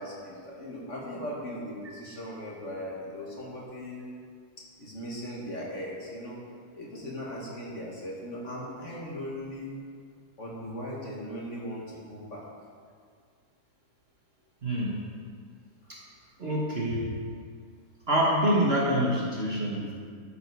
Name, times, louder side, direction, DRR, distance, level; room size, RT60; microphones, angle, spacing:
voice 1, 0.0-4.0 4.8-6.4 6.7-9.8 10.4-12.4, equal, 45° left, -4 dB, 1.9 m, -38 dB
voice 2, 14.6-15.0 16.4-17.1 18.1-19.9, equal, 40° right, -4 dB, 1.4 m, -26 dB
12.5 x 5.8 x 4.7 m, 2.1 s
omnidirectional pair, 1.9 m